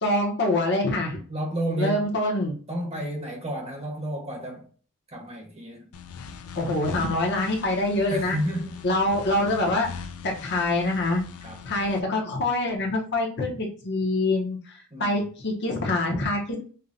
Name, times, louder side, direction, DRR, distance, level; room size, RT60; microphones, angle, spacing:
voice 1, 0.0-1.2 1.8-2.5 6.6-8.4 8.8-9.9 10.2-11.2 11.6-16.6, left 2 dB, 55° left, 0.9 m, -25 dB
voice 2, 1.3-2.1 2.7-4.6 5.1-5.9 8.1-8.8 11.4-11.6 14.9-15.2, equal, 30° right, 1.0 m, -31 dB
sound 1, 5.9-12.0, left 6 dB, 85° left, 0.4 m, -41 dB
5.5 x 2.2 x 2.6 m
head